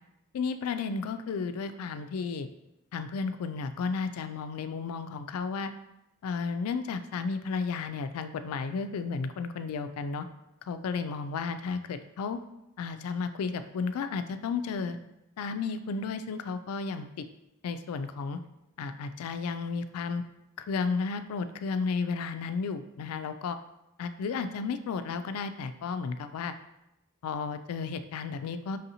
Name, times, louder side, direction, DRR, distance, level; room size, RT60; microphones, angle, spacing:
voice 1, 0.3-2.5 2.9-5.7 6.2-10.3 10.7-12.4 12.8-15.0 15.4-17.2 17.6-18.4 18.8-20.2 20.7-23.6 24.0-26.5 27.2-28.8, left 5 dB, 75° left, 11 dB, 0.3 m, -33 dB
5.4 x 2.6 x 2.8 m, 0.89 s
head